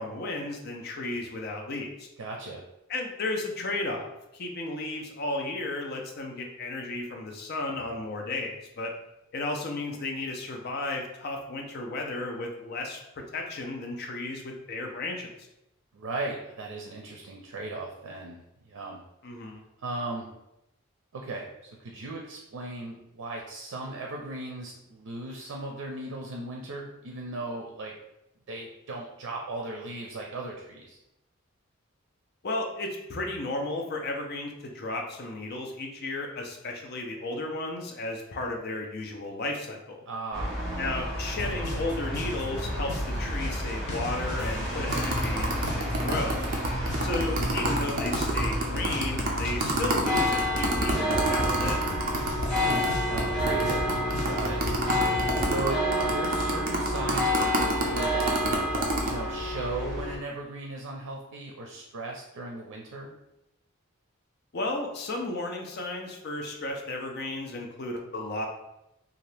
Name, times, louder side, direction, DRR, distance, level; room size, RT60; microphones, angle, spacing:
voice 1, 0.0-2.1 2.9-8.9 9.3-15.3 19.2-19.6 32.4-40.0 40.8-46.4 47.0-51.8 64.5-68.5, left 2 dB, 45° left, 2 dB, 0.5 m, -34 dB
voice 2, 2.2-2.6 15.9-19.0 19.8-20.3 21.1-28.0 28.5-31.0 40.1-40.5 52.6-52.8 53.1-54.0 54.3-54.6 55.4-58.3 59.0-63.1, right 2 dB, 90° right, 0 dB, 0.5 m, -37 dB
sound 1, 40.3-60.2, equal, 5° left, 0.9 m, -30 dB
sound 2, 41.3-55.5, equal, 90° left, 0.8 m, -36 dB
sound 3, 44.9-52.9 53.2-53.3 53.5-59.1, right 2 dB, 40° right, 0.5 m, -29 dB
2.8 x 2.4 x 3.2 m, 0.88 s
head